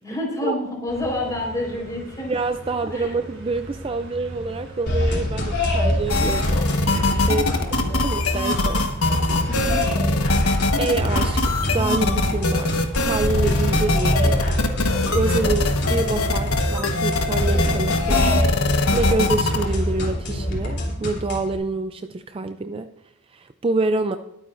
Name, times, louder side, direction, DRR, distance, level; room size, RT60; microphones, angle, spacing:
voice 1, 0.0-2.3 2.9-3.2 7.5-8.1 9.5-9.8, left 1 dB, 15° left, -1 dB, 4.3 m, -29 dB
sound 1, 0.9-16.9, equal, 65° right, 5.3 m, -36 dB
voice 2, 2.3-7.6 8.0-8.9 10.8-14.4 15.1-18.4 18.9-22.9 23.3-24.2, right 3 dB, 25° right, 8 dB, 0.4 m, -27 dB
sound 2, 4.9-21.6, left 1 dB, 55° left, 3.3 m, -25 dB
sound 3, 6.1-19.6, left 2 dB, 80° left, 1.3 m, -22 dB
21.5 x 9.0 x 2.6 m, 0.90 s
head